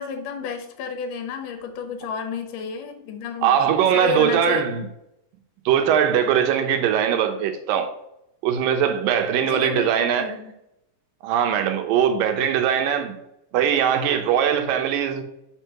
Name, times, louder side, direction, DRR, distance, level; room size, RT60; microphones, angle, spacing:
voice 1, 0.0-3.6 3.9-4.7 9.4-10.5, left 5 dB, 75° left, 2.6 m, -31 dB
voice 2, 3.4-4.9 5.7-7.9 8.4-10.3 11.2-13.2 13.5-15.2, right 9 dB, 90° right, 2.6 m, -21 dB
5.9 x 4.6 x 5.9 m
omnidirectional pair, 3.8 m